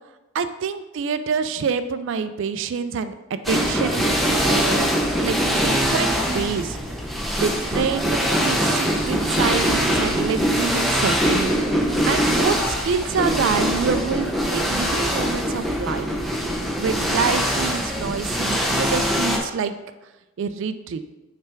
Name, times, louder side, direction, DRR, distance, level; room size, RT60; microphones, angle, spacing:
voice 1, 0.3-4.9 5.2-6.8 7.4-16.1 16.8-19.7 20.4-21.0, right 6 dB, 60° right, 11 dB, 0.3 m, -27 dB
sound 1, 3.4-19.4, equal, ahead, 0.7 m, -22 dB
6.7 x 3.4 x 4.5 m, 1.1 s
head